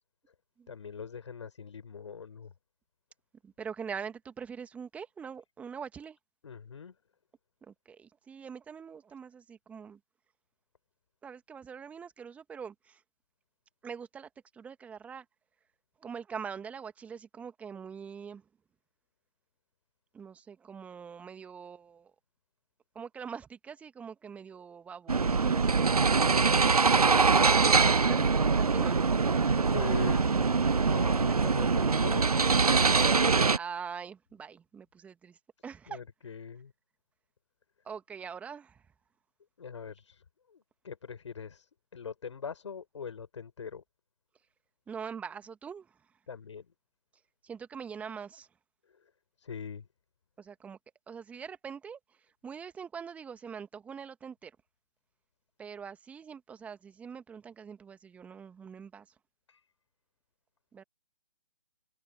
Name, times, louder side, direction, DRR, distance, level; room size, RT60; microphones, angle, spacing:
voice 1, 0.7-2.5 6.4-6.9 29.6-32.6 35.9-36.7 39.6-40.2 40.5-43.8 46.3-46.7 49.4-49.9 59.5-59.6, left 6 dB, 55° left, 7.1 m, -42 dB
voice 2, 3.4-6.2 7.6-10.0 11.2-13.0 13.8-15.3 16.0-18.4 20.1-22.1 22.9-26.8 27.6-29.0 30.8-30.9 31.3-31.4 31.8-32.0 33.6-36.0 37.8-38.8 44.9-46.1 47.4-48.5 50.4-50.8 51.1-54.6 55.6-59.1 60.7-60.8, right 6 dB, 5° right, 1.9 m, -43 dB
sound 1, 25.1-33.6, right 4 dB, 85° right, 0.5 m, -24 dB
figure-of-eight pair, 140°, 19 cm